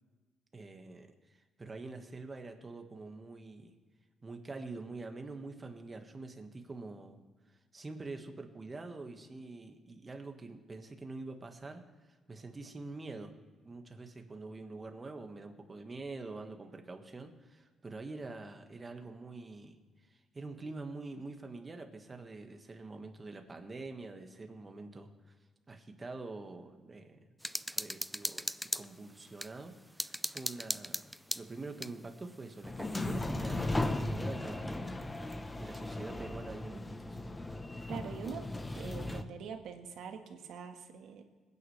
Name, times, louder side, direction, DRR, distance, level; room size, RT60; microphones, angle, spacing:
voice 1, 0.5-3.7 4.2-7.2 7.5-11.8 12.3-13.3 13.6-19.8 20.1-25.1 25.7-27.2 27.7-35.1 35.6-37.2, right 3 dB, 25° right, 5 dB, 1.6 m, -45 dB
sound 1, 27.4-29.5 30.0-31.9, equal, ahead, 0.3 m, -37 dB
sound 2, 32.6-39.2, left 2 dB, 15° left, 0.9 m, -37 dB
voice 2, 37.9-38.5 38.7-41.2, right 7 dB, 75° right, 5 dB, 1.5 m, -44 dB
21.0 x 9.7 x 3.3 m, 1.4 s
cardioid pair, 90°, 0 cm